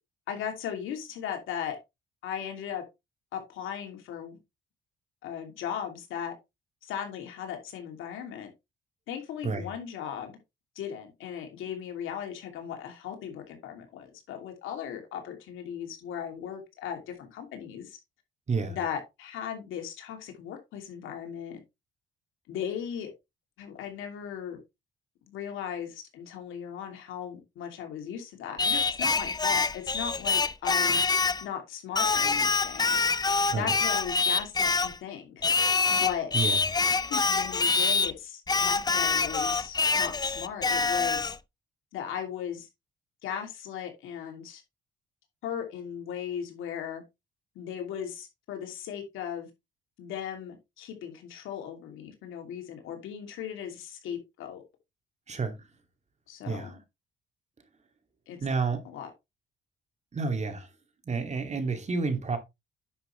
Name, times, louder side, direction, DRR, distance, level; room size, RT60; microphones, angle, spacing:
voice 1, 0.3-1.8 2.2-2.8 3.3-4.4 5.2-6.3 6.8-8.5 9.1-10.3 10.8-18.0 18.7-21.6 22.5-23.1 23.6-24.6 25.3-31.0 31.4-33.0 33.5-35.5 35.9-36.3 37.1-41.3 41.9-42.7 43.2-44.6 45.4-47.0 47.5-49.5 50.0-54.6 56.3-56.7 58.3-58.4 58.8-59.1, left 8 dB, 90° left, 2.8 m, -37 dB
Singing, 28.6-31.4 32.0-35.0 35.4-38.1 38.5-41.4, left 4 dB, 20° left, 0.5 m, -25 dB
voice 2, 56.5-56.8 58.4-58.8 60.1-60.7 61.1-62.4, right 4 dB, 35° right, 2.5 m, -30 dB
10.0 x 6.1 x 3.3 m
cardioid pair, 90°, 20 cm